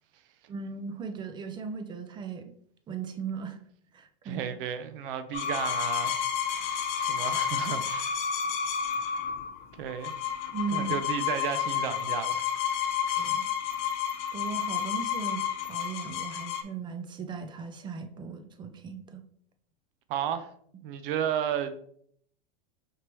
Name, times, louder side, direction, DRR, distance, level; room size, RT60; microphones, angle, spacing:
voice 1, 0.5-2.5 2.9-3.6 3.9-4.6 10.5-11.0 13.2-13.5 14.3-19.2, right 5 dB, 15° right, 0.3 m, -37 dB
voice 2, 4.2-8.2 9.8-10.2 10.7-12.5 20.1-20.5 20.8-21.8, right 9 dB, 65° right, 0.6 m, -33 dB
sound 1, 5.3-16.6, left 8 dB, 45° left, 0.8 m, -30 dB
5.2 x 2.9 x 3.0 m
hypercardioid pair, 115°, 30 cm